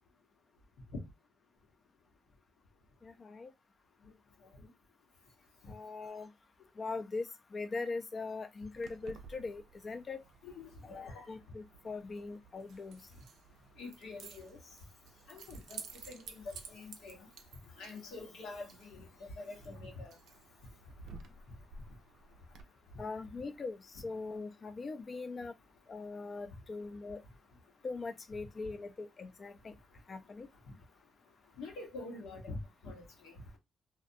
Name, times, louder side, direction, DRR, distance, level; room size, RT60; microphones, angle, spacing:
voice 1, 3.0-3.5 5.7-6.3 6.8-7.3 7.5-10.2 10.8-13.0 23.0-25.5 25.9-27.2 27.8-29.7 30.1-30.5, left 3 dB, 45° left, 0.4 m, -41 dB
Keys jangling, 8.8-22.6, right 5 dB, 80° right, 0.4 m, -54 dB
voice 2, 10.4-11.2 13.8-14.6 15.3-15.8 16.1-17.2 17.8-20.1 31.6-32.6 32.8-33.3, left 3 dB, 85° left, 1.0 m, -46 dB
2.4 x 2.1 x 2.6 m
cardioid pair, 75°, 0 cm